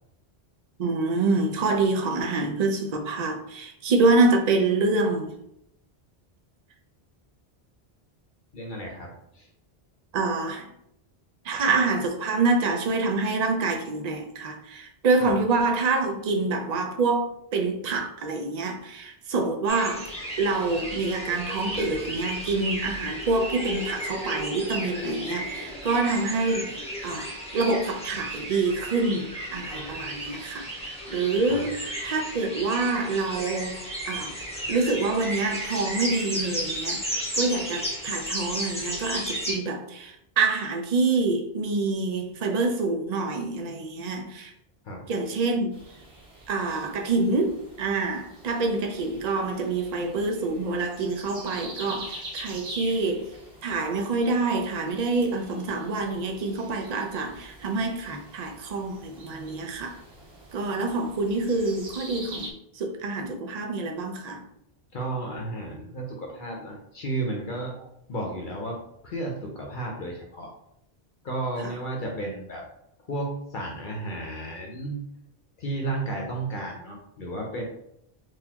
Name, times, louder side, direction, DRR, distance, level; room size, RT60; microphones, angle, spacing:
voice 1, 0.8-5.3 10.1-10.7 11.4-20.1 20.4-33.8 34.1-34.4 34.7-44.5 45.1-45.8 46.5-53.3 53.6-60.0 60.5-64.4, right 3 dB, 50° right, 0.6 m, -26 dB
voice 2, 8.5-9.5 15.2-15.3 31.5-31.6 44.8-45.0 64.9-67.7 68.1-70.5 71.2-72.6 73.1-75.0 75.6-77.6, right 2 dB, 55° left, 0.8 m, -33 dB
sound 1, 19.7-39.6, equal, 5° left, 1.0 m, -34 dB
sound 2, 45.7-62.5, right 1 dB, 80° right, 1.1 m, -44 dB
3.9 x 2.6 x 2.8 m
omnidirectional pair, 1.0 m